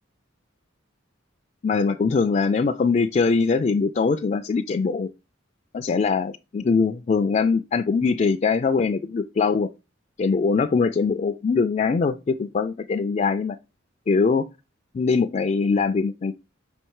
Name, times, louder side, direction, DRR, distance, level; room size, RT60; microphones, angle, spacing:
voice 1, 1.6-5.1 5.7-9.7 10.2-13.6 14.1-14.5 14.9-16.3, left 4 dB, 35° left, 0.3 m, -22 dB
5.7 x 4.4 x 4.6 m
head